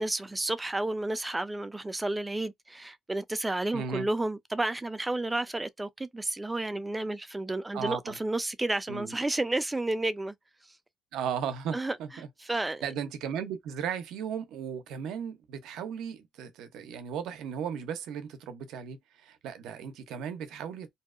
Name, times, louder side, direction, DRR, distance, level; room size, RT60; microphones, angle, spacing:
voice 1, 0.0-10.3 11.7-12.0 12.4-12.8, right 2 dB, 15° right, 0.3 m, -31 dB
voice 2, 3.7-4.1 7.7-8.2 8.9-9.1 11.1-20.9, right 7 dB, 90° right, 0.5 m, -36 dB
2.6 x 2.0 x 2.3 m
cardioid pair, 90°, 0 cm